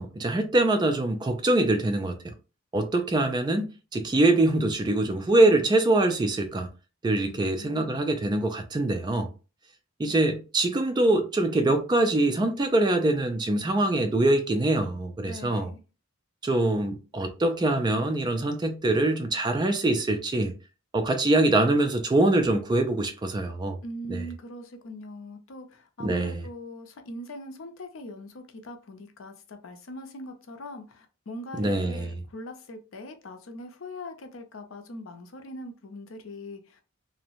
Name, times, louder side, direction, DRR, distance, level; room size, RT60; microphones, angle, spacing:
voice 1, 0.0-2.3 2.7-6.7 7.0-9.3 10.0-15.7 16.4-20.5 20.9-23.8 24.1-24.3 26.0-26.4 31.6-32.1, right 2 dB, 20° right, 0.3 m, -24 dB
voice 2, 7.3-8.0 15.3-15.8 23.8-36.8, left 1 dB, 70° left, 0.5 m, -41 dB
2.7 x 2.0 x 2.8 m
head